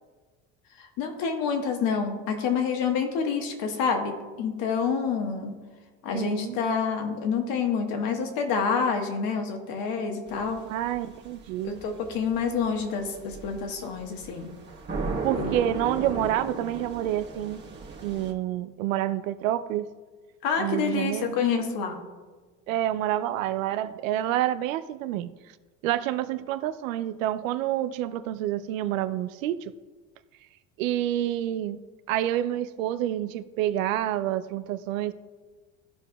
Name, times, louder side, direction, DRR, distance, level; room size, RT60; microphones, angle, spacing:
voice 1, 0.8-5.6 6.0-10.6 11.6-14.5 15.3-15.5 20.4-22.0, left 6 dB, 60° left, 1.4 m, -28 dB
voice 2, 6.1-6.6 10.7-11.8 15.2-17.6 18.0-19.9 20.6-21.4 22.7-25.3 25.8-29.7 30.8-31.8 32.1-35.1, right 12 dB, 85° right, 0.5 m, -28 dB
sound 1, 10.3-18.3, right 3 dB, 25° right, 1.4 m, -36 dB
14.5 x 4.9 x 2.3 m
hypercardioid pair, 85°, 39 cm